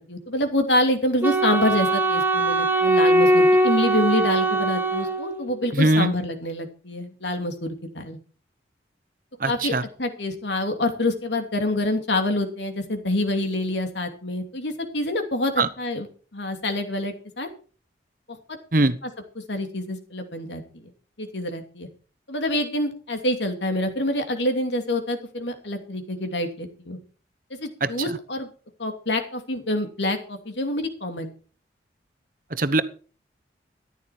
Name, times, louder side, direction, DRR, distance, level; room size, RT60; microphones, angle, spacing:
voice 1, 0.0-8.2 9.4-16.1 16.3-17.5 19.0-19.1 19.5-20.9 21.2-21.9 22.3-27.0 27.6-28.5 28.8-31.3, left 1 dB, 80° left, 5 dB, 2.8 m, -26 dB
Wind instrument woodwind instrument, 1.2-5.7, right 2 dB, 10° right, 1.1 m, -21 dB
voice 2, 5.7-6.1 9.4-9.8 15.6-15.7 18.7-19.0 27.8-27.9 32.5-32.8, right 2 dB, 50° right, 12 dB, 1.0 m, -20 dB
14.0 x 11.0 x 4.4 m, 0.39 s
head